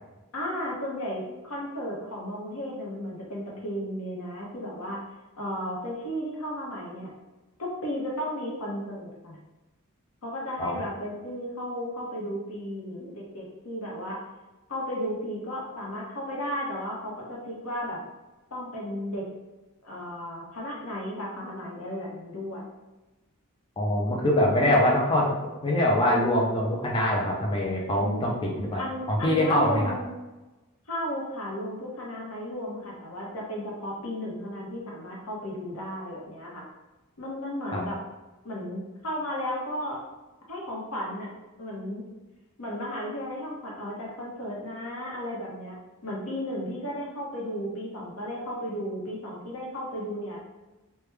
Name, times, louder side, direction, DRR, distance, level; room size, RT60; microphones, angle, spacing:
voice 1, 0.3-5.0 5.4-7.1 7.6-9.4 10.2-14.2 14.7-18.0 18.5-19.2 19.8-22.7 28.0-28.4 28.8-30.1 30.9-36.6 37.2-38.0 38.4-40.0 40.5-41.3 41.6-42.0 42.6-45.8 46.0-50.4, equal, 85° left, -3 dB, 0.9 m, -34 dB
voice 2, 23.8-25.3 25.6-28.8 29.1-29.9 37.7-37.9, left 1 dB, 20° left, -3 dB, 0.4 m, -24 dB
3.2 x 2.2 x 3.2 m, 1.1 s
head